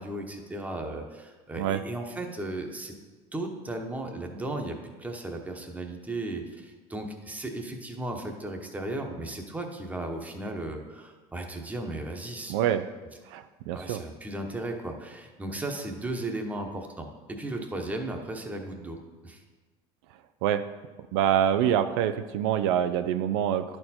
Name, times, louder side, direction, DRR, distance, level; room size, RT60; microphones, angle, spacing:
voice 1, 0.0-2.9 3.3-12.5 13.7-19.0 19.2-19.4, right 2 dB, 10° right, 3 dB, 1.0 m, -35 dB
voice 2, 12.5-12.8 13.3-14.0 20.4-20.6 21.1-23.6, right 10 dB, 85° right, 10 dB, 0.4 m, -25 dB
10.5 x 4.5 x 4.3 m, 1.3 s
supercardioid pair, 115°, 14 cm